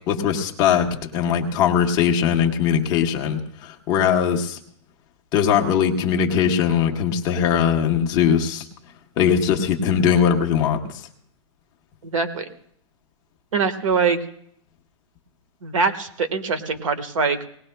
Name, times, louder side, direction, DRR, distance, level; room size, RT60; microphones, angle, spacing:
voice 1, 0.1-4.6 5.3-8.6 9.2-11.0, left 8 dB, 20° left, 2 dB, 0.9 m, -20 dB
voice 2, 12.0-12.4 13.5-14.2 15.6-17.4, right 5 dB, 85° right, 10 dB, 1.4 m, -23 dB
19.0 x 18.5 x 2.2 m, 0.68 s
hypercardioid pair, 170°, 16 cm